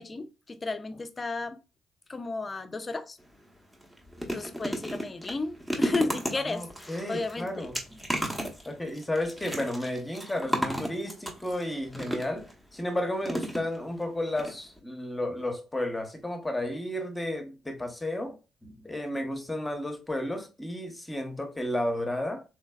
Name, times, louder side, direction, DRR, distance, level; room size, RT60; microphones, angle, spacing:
voice 1, 0.0-1.6 2.1-3.2 4.3-7.7, left 3 dB, 30° left, 0.5 m, -33 dB
sound 1, 3.2-3.4 3.7-12.5 13.2-14.0 14.4-14.5 14.8-14.9, equal, 10° right, 1.0 m, -34 dB
voice 2, 6.5-8.0 8.6-12.5 12.7-22.4, left 1 dB, 15° left, 0.9 m, -32 dB
3.1 x 3.1 x 2.3 m
hypercardioid pair, 50°, 0 cm